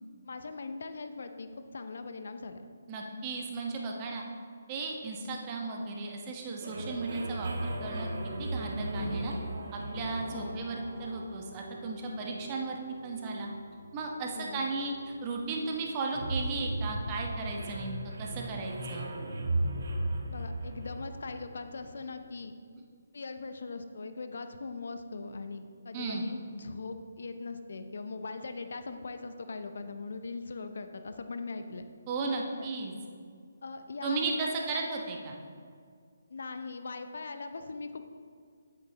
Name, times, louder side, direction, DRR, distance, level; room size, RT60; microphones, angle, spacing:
voice 1, 0.2-2.7 10.3-10.6 14.2-14.6 20.3-22.5 23.1-31.9 32.6-32.7 33.6-34.7 36.3-38.0, left 3 dB, 65° left, 8 dB, 0.6 m, -40 dB
voice 2, 2.9-4.2 4.7-8.1 8.4-9.3 9.7-13.5 13.9-19.1 25.9-26.2 32.1-32.9 34.0-35.4, right 3 dB, 30° right, 1 dB, 1.1 m, -35 dB
sound 1, 6.6-22.0, right 1 dB, 55° right, 1.3 m, -37 dB
9.3 x 8.4 x 2.9 m, 2.1 s
figure-of-eight pair, 145°, 0 cm